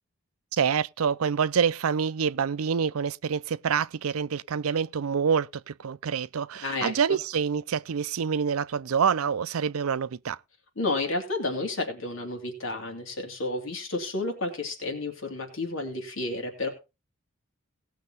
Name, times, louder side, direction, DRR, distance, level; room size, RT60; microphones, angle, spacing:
voice 1, 0.5-10.4, right 6 dB, 85° right, 0.5 m, -27 dB
voice 2, 6.6-7.2 10.8-16.7, left 2 dB, 65° left, 3.0 m, -31 dB
18.0 x 6.5 x 4.1 m
head